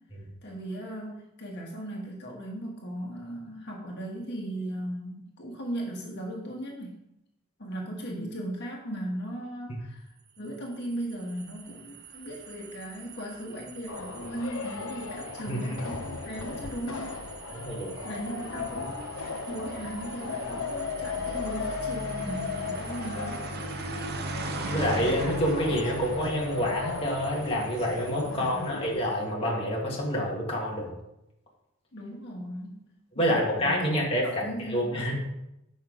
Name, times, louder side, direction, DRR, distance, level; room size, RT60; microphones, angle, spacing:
voice 1, 0.4-6.9 7.6-10.1 10.4-17.2 18.0-19.1 19.5-23.5 28.2-28.6 31.9-32.8 33.1-33.8 34.2-35.1, right 1 dB, 55° left, -1 dB, 1.6 m, -37 dB
sound 1, 10.4-29.0, right 2 dB, 55° right, 0.8 m, -41 dB
sound 2, 13.9-29.0, left 5 dB, 80° left, 0.7 m, -36 dB
voice 2, 17.5-17.9 24.7-30.9 33.2-34.2 34.7-35.1, equal, 30° left, -3 dB, 1.7 m, -28 dB
7.2 x 5.6 x 5.0 m, 0.87 s
head